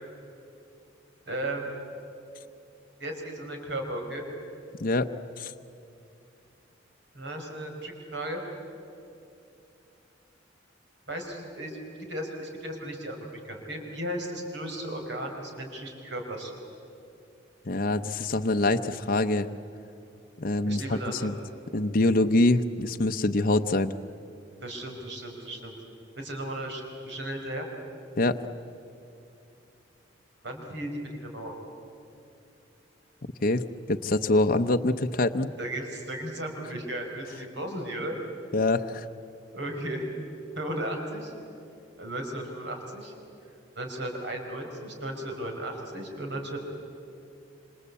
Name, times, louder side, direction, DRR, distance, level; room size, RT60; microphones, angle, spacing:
voice 1, 1.3-1.7 3.0-4.2 7.1-8.4 11.1-11.8 12.1-16.5 20.6-21.3 24.6-25.7 26.2-27.7 30.4-31.5 35.6-38.1 39.5-40.1 40.5-41.3 42.0-43.1 43.7-46.6, right 1 dB, 65° right, 3 dB, 5.1 m, -35 dB
voice 2, 17.7-19.5 20.4-21.3 21.7-23.9 28.2-28.4 33.4-35.5 38.5-39.1, left 2 dB, 50° left, 6 dB, 0.8 m, -25 dB
27.0 x 26.5 x 8.3 m, 2.7 s
head